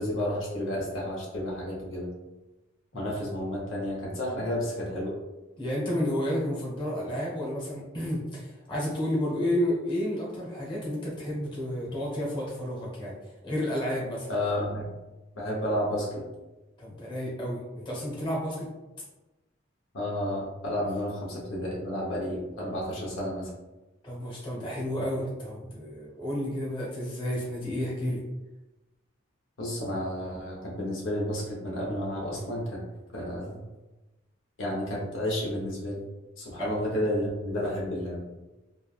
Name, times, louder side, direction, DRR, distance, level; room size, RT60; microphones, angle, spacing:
voice 1, 0.0-2.1 2.9-5.2 14.3-14.9 15.3-16.2 19.9-23.5 29.6-32.8 33.1-33.6 34.6-36.0 36.4-38.2, left 1 dB, 85° left, -3 dB, 0.8 m, -31 dB
voice 2, 5.6-13.2 13.4-14.3 16.8-18.7 24.0-28.2 36.6-36.7, equal, 25° left, -4 dB, 0.8 m, -31 dB
3.2 x 2.1 x 2.3 m, 1.1 s
head